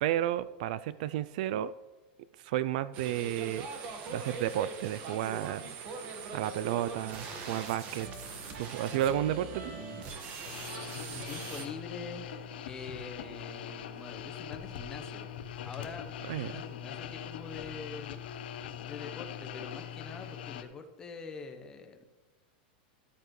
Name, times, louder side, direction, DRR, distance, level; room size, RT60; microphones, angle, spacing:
voice 1, 0.0-1.7 2.4-3.7 4.1-5.7 6.3-8.1 8.6-9.7 16.3-16.6, right 12 dB, 55° right, 17 dB, 0.3 m, -32 dB
sound 1, 2.9-11.7, right 4 dB, 35° right, 1.4 m, -41 dB
sound 2, 10.5-20.6, left 9 dB, 75° left, 0.9 m, -42 dB
voice 2, 11.1-15.3 15.6-16.1 16.4-18.2 18.7-22.1, left 4 dB, 15° left, 6 dB, 0.9 m, -45 dB
13.5 x 11.5 x 3.2 m, 1.2 s
supercardioid pair, 165°, 5 cm